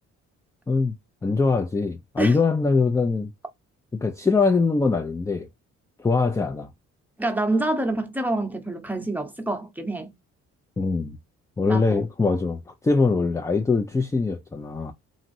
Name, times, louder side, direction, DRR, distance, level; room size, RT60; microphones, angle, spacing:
voice 1, 1.2-3.3 4.0-5.5 6.0-6.7 10.8-11.2 11.6-14.9, left 4 dB, 10° left, 0.3 m, -22 dB
voice 2, 7.2-10.1 11.6-12.0, right 2 dB, 5° right, 0.8 m, -27 dB
2.9 x 2.5 x 2.6 m
cardioid pair, 90°, 30 cm